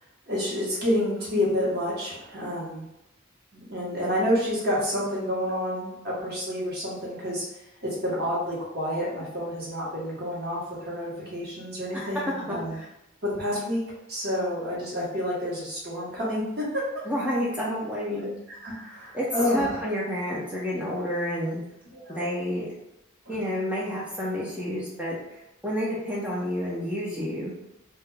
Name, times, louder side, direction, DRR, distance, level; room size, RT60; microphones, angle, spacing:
voice 1, 0.3-2.8 3.5-7.4 7.8-12.8 13.2-13.8 14.1-16.9 18.1-18.3 18.6-19.8 21.9-22.3 23.3-23.5, equal, 50° right, -6 dB, 0.9 m, -29 dB
voice 2, 12.4-12.9 17.1-18.3 19.1-21.6 22.1-22.7 23.3-27.5, equal, 5° right, -6 dB, 0.3 m, -30 dB
2.2 x 2.2 x 3.1 m, 0.87 s
head